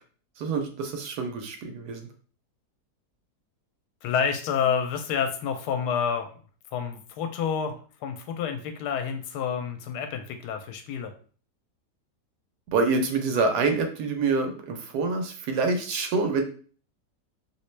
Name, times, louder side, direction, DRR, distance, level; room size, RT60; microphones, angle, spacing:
voice 1, 0.4-2.1 12.7-16.4, right 4 dB, 75° right, 4 dB, 1.1 m, -26 dB
voice 2, 4.0-6.3 6.7-7.7 8.0-11.1, left 7 dB, 80° left, 6 dB, 1.1 m, -28 dB
2.9 x 2.9 x 3.2 m, 0.42 s
omnidirectional pair, 1.8 m